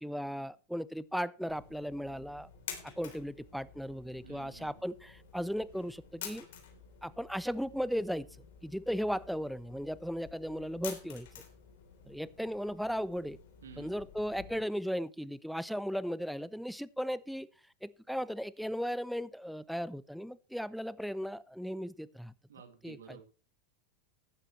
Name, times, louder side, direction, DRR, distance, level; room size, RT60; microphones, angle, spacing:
voice 1, 0.0-2.5 3.0-6.5 7.0-8.3 8.6-11.3 12.1-13.4 13.8-17.5 17.8-22.3 22.8-23.2, equal, ahead, 18 dB, 0.6 m, -36 dB
sound 1, 1.5-14.6, left 8 dB, 70° left, 3.5 m, -50 dB
voice 2, 4.2-4.9 13.6-13.9 22.5-23.2, right 7 dB, 85° right, 6 dB, 2.4 m, -52 dB
15.0 x 11.0 x 3.2 m, 0.34 s
hypercardioid pair, 100°, 0 cm